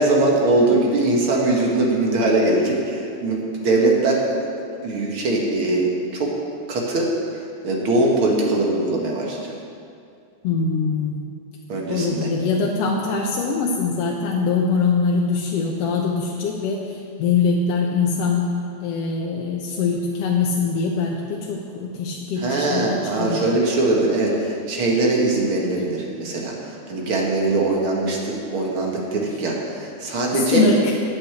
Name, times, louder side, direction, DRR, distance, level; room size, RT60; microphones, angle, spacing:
voice 1, 0.0-4.2 4.8-6.4 6.7-9.4 11.7-12.3 22.4-30.6, right 2 dB, 50° right, -2 dB, 2.3 m, -21 dB
voice 2, 10.4-11.2 11.9-18.5 18.8-23.5 30.3-30.9, left 4 dB, 70° left, -1 dB, 1.8 m, -23 dB
9.7 x 8.4 x 8.0 m, 2.5 s
omnidirectional pair, 3.3 m